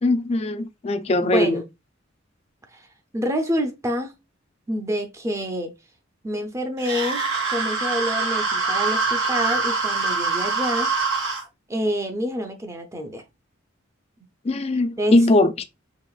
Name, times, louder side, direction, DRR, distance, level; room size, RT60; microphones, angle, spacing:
voice 1, 0.0-1.6 14.4-15.6, left 2 dB, 30° left, 0.4 m, -20 dB
voice 2, 1.2-1.6 2.7-2.9 3.1-4.1 4.7-5.7 6.2-7.2 7.5-10.9 11.7-13.2 15.0-15.2, equal, 15° right, 0.6 m, -27 dB
sound 1, 6.8-11.4, right 4 dB, 90° right, 2.0 m, -24 dB
4.8 x 2.9 x 2.3 m
head